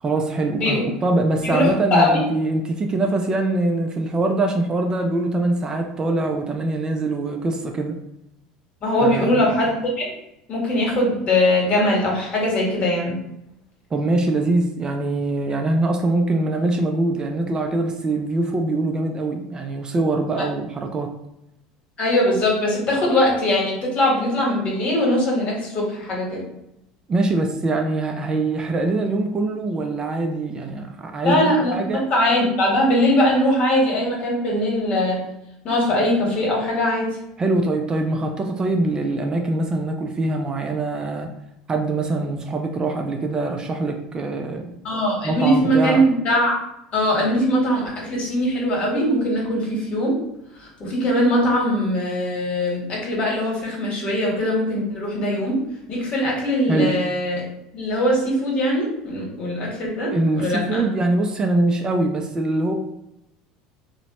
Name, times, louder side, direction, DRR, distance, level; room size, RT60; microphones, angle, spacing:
voice 1, 0.0-8.0 9.0-9.5 13.9-21.1 27.1-32.1 37.4-41.3 41.7-44.7 45.2-46.0 56.7-57.0 60.1-62.7, right 2 dB, 30° right, 4 dB, 0.4 m, -23 dB
voice 2, 1.4-2.2 8.8-10.0 10.5-13.2 22.0-26.4 31.2-31.8 32.1-35.2 35.6-37.1 44.8-46.5 46.9-50.1 50.6-55.6 55.9-57.4 57.7-60.8, left 1 dB, 45° left, -2 dB, 1.2 m, -21 dB
2.8 x 2.1 x 2.8 m, 0.84 s
supercardioid pair, 90°, 3 cm